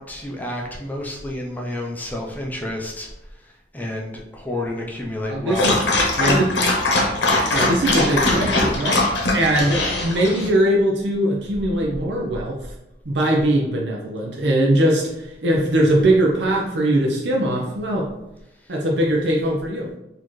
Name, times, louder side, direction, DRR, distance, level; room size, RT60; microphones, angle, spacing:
voice 1, 0.0-3.1 3.4-5.9, left 1 dB, 10° left, 0 dB, 0.5 m, -30 dB
voice 2, 5.3-5.7 6.2-6.5 7.5-9.0 9.3-12.6 13.1-18.1 18.7-19.9, right 1 dB, 75° right, -2 dB, 0.6 m, -20 dB
Dog, 5.5-10.5, left 2 dB, 90° left, 0.9 m, -21 dB
4.1 x 2.8 x 3.1 m, 0.91 s
head